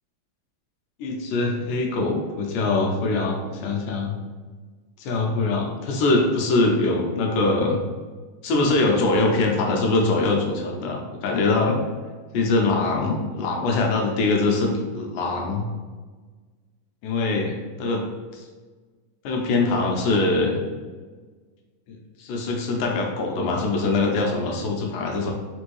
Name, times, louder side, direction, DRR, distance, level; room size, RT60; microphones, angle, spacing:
voice 1, 1.0-4.2 5.0-7.8 8.4-11.8 12.3-15.6 17.0-18.0 18.3-18.4 19.2-20.6 22.2-25.3, left 3 dB, 90° left, 0 dB, 2.2 m, -23 dB
5.2 x 2.6 x 3.1 m, 1.4 s
omnidirectional pair, 3.7 m